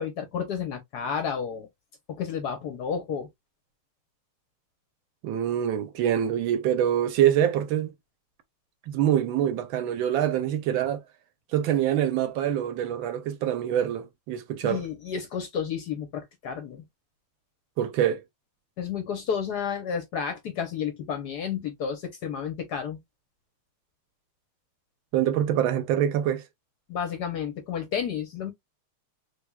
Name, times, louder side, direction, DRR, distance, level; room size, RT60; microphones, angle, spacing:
voice 1, 0.0-1.7 2.1-3.3 14.6-16.8 18.8-23.0 26.9-28.5, left 7 dB, 65° left, 1.0 m, -31 dB
voice 2, 5.2-7.9 8.9-11.0 11.5-14.8 17.8-18.2 25.1-26.4, right 10 dB, 75° right, 1.3 m, -25 dB
3.4 x 3.4 x 2.2 m
omnidirectional pair, 2.3 m